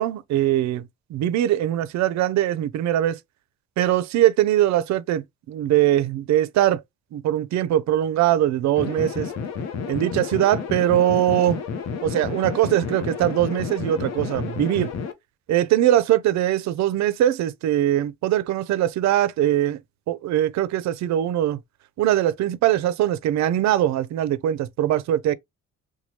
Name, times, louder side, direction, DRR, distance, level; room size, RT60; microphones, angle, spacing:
voice 1, 0.0-3.2 3.8-6.8 7.1-9.3 9.9-11.6 12.0-14.9 15.5-19.8 20.1-21.6 22.0-25.3, right 12 dB, 65° right, 0.5 m, -21 dB
sound 1, 8.8-15.1, left 6 dB, 60° left, 0.7 m, -31 dB
3.0 x 2.3 x 2.8 m
cardioid pair, 90°, 30 cm